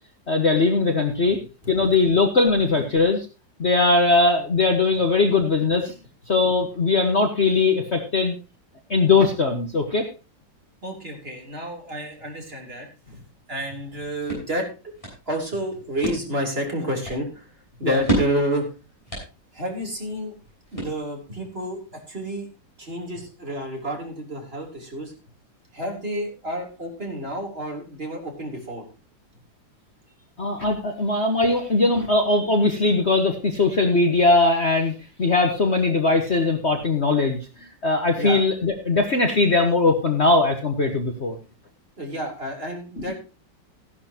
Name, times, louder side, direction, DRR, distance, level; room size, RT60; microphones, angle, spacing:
voice 1, 0.3-1.4 1.7-3.2 3.6-5.9 6.3-8.4 8.9-10.1 17.8-18.0 30.4-37.4 37.8-41.4, left 3 dB, 40° left, 4 dB, 1.6 m, -20 dB
voice 2, 10.8-13.2 13.5-14.7 15.3-17.5 17.8-18.7 19.5-20.4 20.7-22.5 22.8-25.1 25.7-28.8 38.2-38.4 42.0-43.1, right 1 dB, 30° right, 1 dB, 3.9 m, -30 dB
sound 1, 13.8-21.4, right 1 dB, 15° left, 7.2 m, -33 dB
15.5 x 11.0 x 3.0 m, 0.31 s
omnidirectional pair, 2.0 m